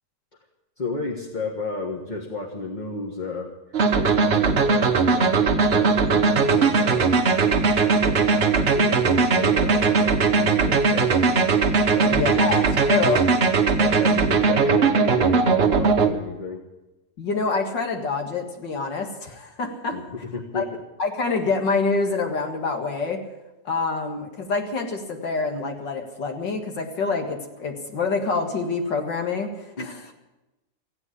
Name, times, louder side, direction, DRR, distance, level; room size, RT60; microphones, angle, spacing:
voice 1, 0.8-3.5 3.9-11.4 11.9-12.4 13.8-16.6 19.9-20.8 29.8-30.1, left 3 dB, 30° left, 1 dB, 1.4 m, -33 dB
sound 1, 3.7-16.1, right 4 dB, 40° right, 1.0 m, -19 dB
voice 2, 12.1-13.2 17.2-20.0 20.5-20.6 21.0-23.2 23.6-30.0, left 4 dB, 85° left, 3 dB, 2.5 m, -26 dB
15.5 x 9.0 x 9.7 m, 1.0 s
omnidirectional pair, 1.9 m